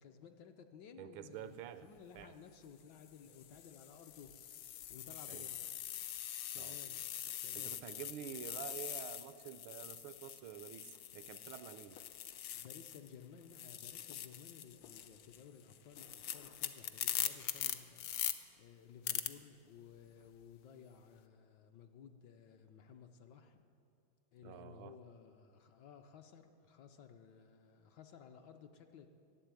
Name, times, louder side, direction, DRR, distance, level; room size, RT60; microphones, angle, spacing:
voice 1, 0.0-1.5 1.8-4.3 4.9-5.7 6.5-7.0 7.4-7.8 12.5-18.1 18.6-23.6 24.3-29.1, left 7 dB, 70° left, 6 dB, 1.1 m, -56 dB
voice 2, 1.0-2.4 5.3-5.4 6.6-6.8 7.5-12.0 24.4-25.0, right 10 dB, 80° right, 13 dB, 1.4 m, -49 dB
sound 1, 2.0-2.2 3.0-13.1 13.4-18.3 19.1-19.3, left 11 dB, 85° left, 0.8 m, -43 dB
11.5 x 7.8 x 8.9 m, 2.4 s
omnidirectional pair, 2.2 m